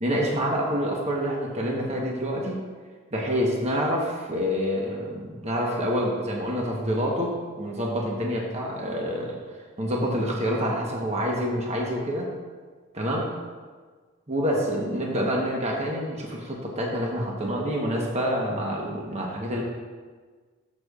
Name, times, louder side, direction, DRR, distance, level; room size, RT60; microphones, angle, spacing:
voice 1, 0.0-2.6 3.1-9.4 9.8-12.3 12.9-13.2 14.3-19.6, equal, 35° right, -2 dB, 1.1 m, -27 dB
12.0 x 6.3 x 2.4 m, 1.5 s
head